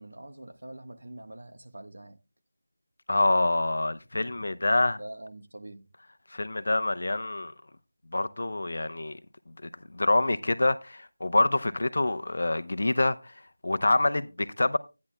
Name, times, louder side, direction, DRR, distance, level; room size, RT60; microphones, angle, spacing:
voice 1, 0.0-2.2 5.0-5.9, right 1 dB, 70° right, 1.3 m, -44 dB
voice 2, 3.1-5.0 6.3-7.5 8.1-9.2 9.9-13.3 13.6-14.8, left 2 dB, 55° left, 0.7 m, -26 dB
13.5 x 9.6 x 2.2 m
figure-of-eight pair, 175°, 0 cm